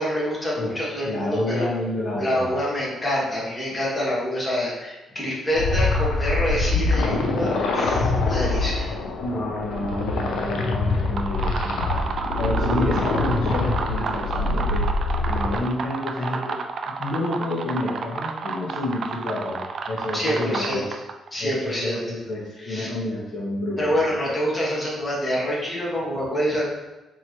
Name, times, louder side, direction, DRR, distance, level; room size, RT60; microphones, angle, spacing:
voice 1, 0.0-1.7 2.1-8.9 20.1-20.8 21.3-22.0 22.6-22.9 23.8-26.6, equal, 20° left, -6 dB, 1.5 m, -26 dB
voice 2, 1.0-2.5 9.2-12.1 12.4-14.8 15.2-16.6 17.0-19.6 19.9-20.8 21.4-24.1, left 1 dB, 65° left, -6 dB, 1.1 m, -29 dB
sound 1, 5.5-15.6, left 2 dB, 80° left, 0.5 m, -24 dB
sound 2, 10.9-21.3, right 5 dB, 55° right, 0.3 m, -31 dB
4.3 x 3.0 x 2.9 m, 1.1 s
cardioid pair, 90°, 0 cm